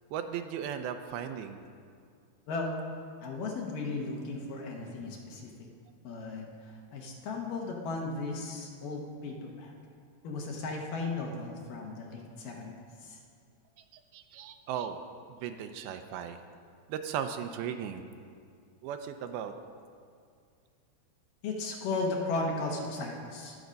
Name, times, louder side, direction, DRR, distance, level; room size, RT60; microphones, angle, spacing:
voice 1, 0.1-1.6 14.1-15.0 15.3-16.4 16.9-18.0 18.8-19.5, right 8 dB, 80° right, 7 dB, 2.4 m, -36 dB
voice 2, 3.2-5.5 6.0-6.5 6.9-9.7 10.2-12.7 13.0-13.2 21.4-23.6, left 3 dB, 65° left, 0 dB, 2.6 m, -35 dB
21.0 x 7.1 x 5.2 m, 2.3 s
omnidirectional pair, 4.5 m